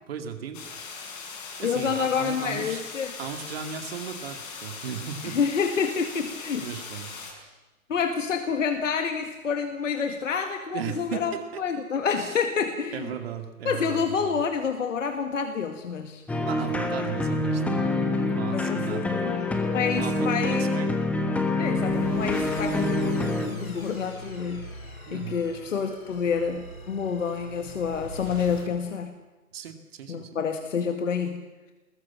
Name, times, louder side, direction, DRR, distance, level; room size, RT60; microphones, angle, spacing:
voice 1, 0.1-0.8 1.1-1.2 1.6-2.8 3.2-5.4 6.6-7.1 10.7-11.3 11.5-11.6 12.1-12.4 12.9-14.4 16.5-19.5 20.0-20.9 25.1-25.4 29.5-30.3, right 8 dB, 45° right, 6 dB, 2.4 m, -36 dB
sound 1, 0.5-7.3, left 5 dB, 25° left, 5.4 m, -40 dB
voice 2, 1.6-3.1 5.2-6.7 7.9-13.1 13.7-16.2 18.5-20.7 21.6-24.7 25.1-29.1 30.1-31.5, left 6 dB, 60° left, 6 dB, 2.1 m, -28 dB
sound 2, 16.3-23.5, left 2 dB, 5° left, 1.2 m, -26 dB
sound 3, 21.4-28.7, equal, 80° left, 7.7 m, -42 dB
24.0 x 21.0 x 7.3 m, 1.2 s
figure-of-eight pair, 140°, 43 cm